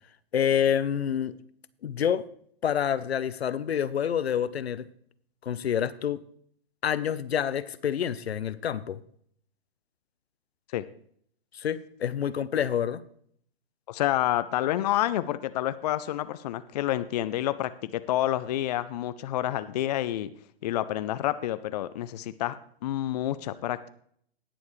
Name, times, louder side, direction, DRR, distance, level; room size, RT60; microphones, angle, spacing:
voice 1, 0.3-1.3 1.8-2.2 2.6-4.9 5.4-6.2 6.8-9.0 11.5-13.0, left 9 dB, 80° left, 15 dB, 0.8 m, -27 dB
voice 2, 13.9-20.3 20.6-22.6 22.8-23.8, left 13 dB, 40° left, 13 dB, 0.5 m, -28 dB
19.0 x 7.1 x 3.2 m, 0.63 s
hypercardioid pair, 135°, 31 cm